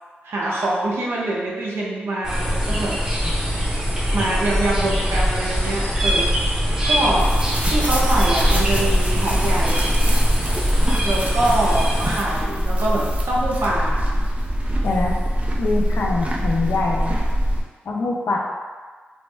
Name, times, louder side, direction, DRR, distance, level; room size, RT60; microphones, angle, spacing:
voice 1, 0.2-3.3 4.1-6.3 6.9-7.3 7.7-10.0 11.0-14.0, right 1 dB, 80° right, -4 dB, 0.7 m, -24 dB
sound 1, 2.2-12.2, equal, 15° right, 0.8 m, -22 dB
sound 2, 7.2-17.6, equal, 35° right, 0.5 m, -22 dB
voice 2, 14.8-15.2 15.6-17.2 17.9-18.4, left 3 dB, 75° left, -1 dB, 0.5 m, -23 dB
3.4 x 2.0 x 3.3 m, 1.4 s
cardioid pair, 65°, 4 cm